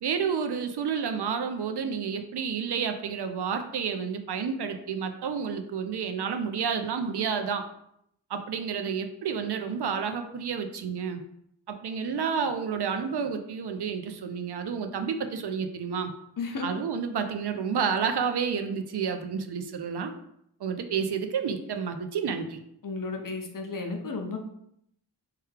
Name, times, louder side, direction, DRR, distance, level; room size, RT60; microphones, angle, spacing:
voice 1, 0.0-7.6 8.3-11.2 11.7-16.1 16.6-20.1 20.6-22.6, right 6 dB, 65° right, 7 dB, 0.5 m, -30 dB
voice 2, 16.4-16.7 22.8-24.4, left 3 dB, 50° left, 3 dB, 0.6 m, -33 dB
3.3 x 2.2 x 3.2 m, 0.74 s
cardioid pair, 50°, 43 cm